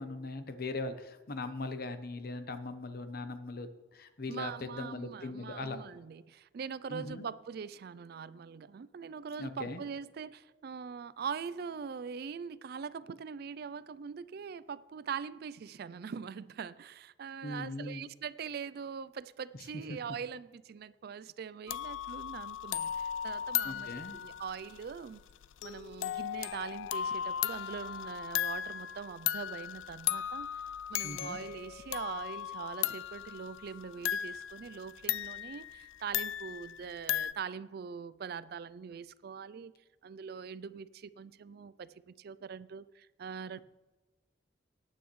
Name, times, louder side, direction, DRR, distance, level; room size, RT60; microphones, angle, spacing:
voice 1, 0.0-5.8 6.9-7.3 9.4-9.8 17.4-18.1 23.6-24.2 31.0-31.4, left 2 dB, 50° left, 0.9 m, -40 dB
voice 2, 4.3-25.2 25.6-30.6 30.9-39.7 40.0-43.6, right 6 dB, 55° right, 0.3 m, -42 dB
sound 1, 21.7-37.3, left 10 dB, 90° left, 0.4 m, -37 dB
18.5 x 9.1 x 3.1 m
head